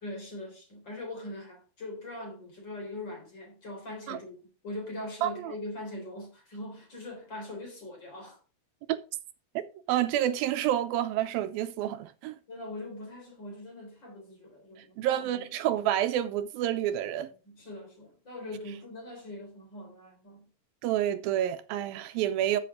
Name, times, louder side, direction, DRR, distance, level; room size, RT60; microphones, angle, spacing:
voice 1, 0.0-8.4 12.5-15.4 17.5-20.4, left 1 dB, 30° left, 4.1 m, -41 dB
voice 2, 5.2-5.6 9.6-12.4 15.0-17.3 20.8-22.6, right 12 dB, 80° right, 2.5 m, -29 dB
13.0 x 7.6 x 3.7 m
omnidirectional pair, 4.2 m